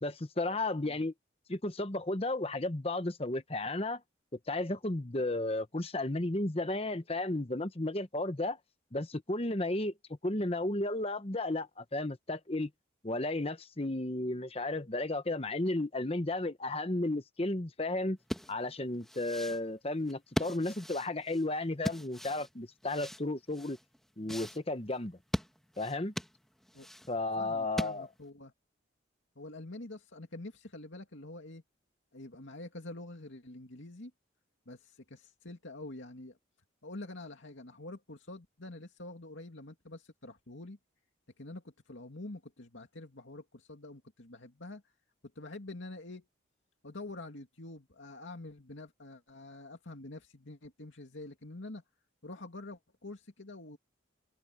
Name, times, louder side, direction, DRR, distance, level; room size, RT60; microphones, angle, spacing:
voice 1, 0.0-1.1 1.5-4.0 4.5-8.6 8.9-9.9 10.2-12.7 13.0-18.2 18.5-23.8 24.2-25.2 25.8-26.1 27.1-28.1, left 2 dB, 30° left, 1.0 m, -33 dB
sound 1, 18.2-28.3, equal, ahead, 1.5 m, -40 dB
voice 2, 27.4-28.5 29.4-31.6 32.1-34.1 34.7-36.4 36.8-40.8 41.4-44.8 45.4-46.3 46.8-51.8 52.2-53.8, left 2 dB, 75° left, 2.4 m, -46 dB
open air
head